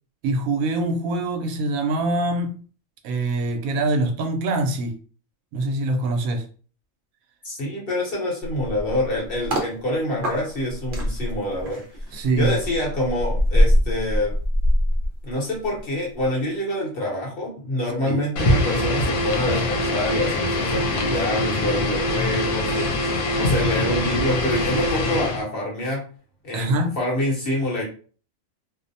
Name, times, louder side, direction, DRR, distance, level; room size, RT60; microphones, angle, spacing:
voice 1, 0.2-2.5 3.0-5.0 5.5-6.5 12.1-12.6 18.0-18.2 26.5-26.9, right 2 dB, 80° right, 1.0 m, -24 dB
voice 2, 7.4-11.8 12.1-14.3 15.2-26.0 26.4-27.8, left 1 dB, 50° left, 0.9 m, -26 dB
sound 1, 8.4-9.7 10.2-15.8 16.1-16.4, equal, 50° right, 0.7 m, -23 dB
sound 2, 18.4-25.4, left 1 dB, 80° left, 1.0 m, -23 dB
2.5 x 2.0 x 2.6 m
omnidirectional pair, 1.4 m